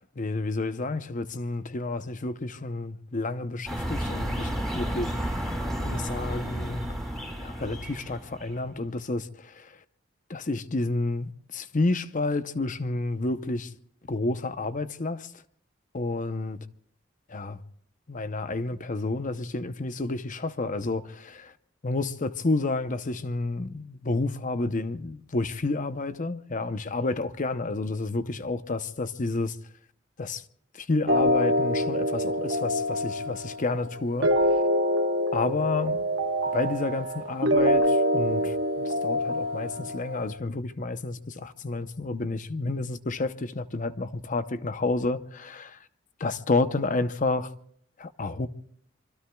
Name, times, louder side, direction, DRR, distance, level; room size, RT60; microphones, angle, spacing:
voice 1, 0.0-5.5 5.8-6.8 7.4-9.7 10.3-13.7 14.1-15.3 15.9-16.6 17.3-17.6 18.1-21.5 21.8-29.6 30.2-30.4 30.7-34.3 35.3-36.0 36.5-45.8 46.2-47.5 48.0-48.5, left 2 dB, 40° left, 0.8 m, -30 dB
sound 1, 3.7-8.6, equal, ahead, 4.6 m, -32 dB
sound 2, 31.1-40.2, equal, 65° right, 1.3 m, -25 dB
25.5 x 24.5 x 2.3 m
head